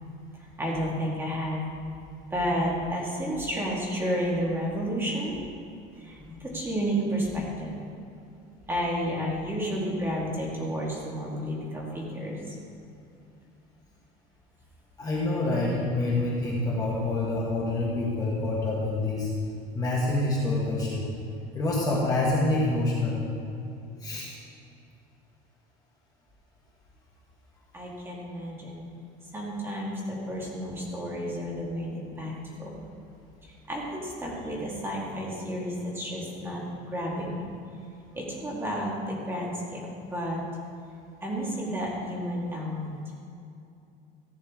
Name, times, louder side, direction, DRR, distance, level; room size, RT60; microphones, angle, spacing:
voice 1, 0.6-1.6 2.3-5.4 6.0-7.8 8.7-12.6 27.7-28.8 29.3-32.7 33.4-37.4 38.1-40.4 41.2-42.9, equal, 10° right, -4 dB, 1.8 m, -31 dB
voice 2, 15.0-19.3 19.7-21.0 21.5-23.2 24.0-24.3, left 2 dB, 20° left, -5 dB, 1.4 m, -27 dB
14.5 x 9.3 x 3.6 m, 2.6 s
cardioid pair, 170°, 19 cm